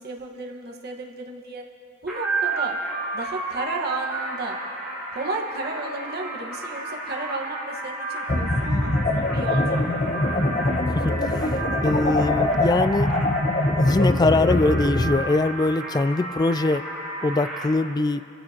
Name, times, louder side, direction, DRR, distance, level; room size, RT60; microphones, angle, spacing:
voice 1, 0.0-1.6 2.0-2.8 3.1-4.6 5.1-9.8, right 2 dB, 50° right, 0 dB, 1.5 m, -33 dB
sound 1, 2.1-17.7, right 2 dB, 5° right, 3.8 m, -32 dB
sound 2, 8.3-15.1, left 1 dB, 35° left, 0.9 m, -23 dB
voice 2, 11.8-13.2 13.8-16.8 17.2-18.2, left 2 dB, 20° left, 13 dB, 0.3 m, -22 dB
26.5 x 15.5 x 3.0 m, 2.7 s
head